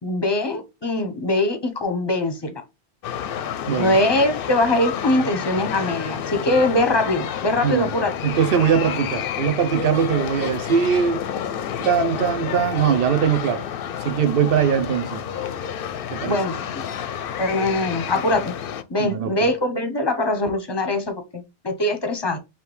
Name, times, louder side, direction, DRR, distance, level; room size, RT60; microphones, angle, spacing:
voice 1, 0.0-2.6 3.8-8.1 16.3-16.6 17.4-18.5 18.9-22.4, left 1 dB, 25° left, 0.8 m, -22 dB
sound 1, 3.0-18.8, left 9 dB, 65° left, 0.7 m, -30 dB
voice 2, 8.2-11.2 11.8-13.6 14.0-15.2 16.1-16.4 19.0-19.3, right 7 dB, 65° right, 0.8 m, -21 dB
4.9 x 3.0 x 3.1 m
omnidirectional pair, 1.1 m